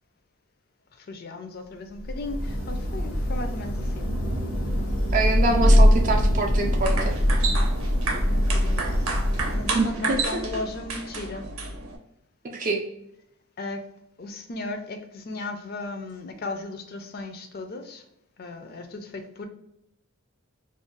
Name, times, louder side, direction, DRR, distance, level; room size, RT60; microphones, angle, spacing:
voice 1, 0.9-4.1 8.3-9.1 9.5-11.5 13.6-13.8 14.2-18.0 18.4-19.5, left 2 dB, 45° left, 6 dB, 0.4 m, -36 dB
Thunder / Rain, 2.0-10.0, equal, 85° left, 1.1 m, -22 dB
voice 2, 5.1-7.1 9.7-10.2 12.5-12.8, right 3 dB, 40° right, 3 dB, 0.3 m, -25 dB
sound 1, 6.6-12.0, right 3 dB, 85° right, 0.6 m, -31 dB
2.5 x 2.2 x 3.7 m, 0.80 s
head